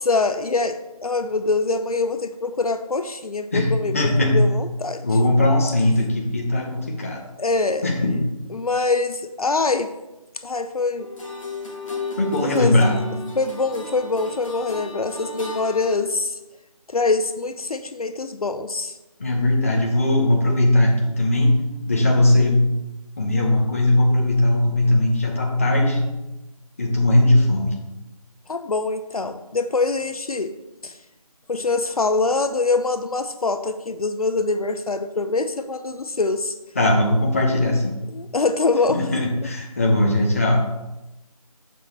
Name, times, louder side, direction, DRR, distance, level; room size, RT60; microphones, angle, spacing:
voice 1, 0.0-5.0 7.4-7.9 8.5-9.9 10.4-11.1 12.4-12.8 13.4-16.4 16.9-19.0 28.5-30.5 30.8-31.0 31.5-36.5 38.1-39.2, left 3 dB, 75° left, 10 dB, 0.5 m, -24 dB
voice 2, 3.5-4.4 5.0-7.2 7.8-8.2 12.2-13.0 19.2-22.6 23.2-26.1 26.8-27.8 36.7-38.0 38.9-40.7, left 1 dB, 25° left, 0 dB, 0.9 m, -19 dB
sound 1, 11.0-16.0, left 3 dB, 60° left, 1.6 m, -34 dB
6.7 x 5.9 x 3.4 m, 1.0 s
figure-of-eight pair, 165°, 19 cm